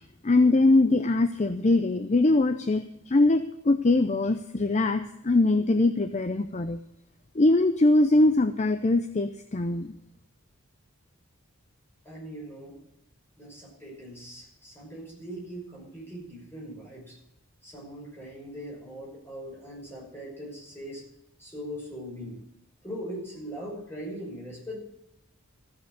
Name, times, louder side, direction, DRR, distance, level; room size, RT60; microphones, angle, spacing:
voice 1, 0.2-6.8 7.4-9.9, left 2 dB, 30° left, 9 dB, 0.6 m, -22 dB
voice 2, 12.0-12.8 13.4-17.2 17.6-21.0 21.4-22.4 22.8-24.8, equal, 10° left, -3 dB, 5.8 m, -40 dB
14.0 x 7.9 x 8.1 m, 0.83 s
head